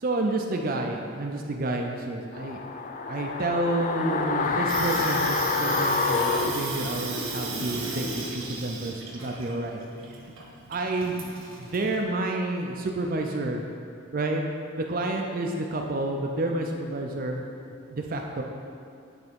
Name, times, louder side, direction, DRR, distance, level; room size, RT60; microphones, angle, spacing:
voice 1, 0.0-2.6 3.1-9.8 10.7-11.2 11.6-13.6 14.1-14.4 14.7-17.5 17.9-18.4, right 2 dB, 45° right, 2 dB, 0.5 m, -29 dB
sound 1, 2.3-7.5 7.8-7.9, left 4 dB, 40° left, 0.4 m, -27 dB
Water tap faucet / Sink (filling or washing), 4.4-12.0, right 3 dB, 85° right, 1.3 m, -35 dB
9.5 x 3.5 x 5.2 m, 2.5 s
head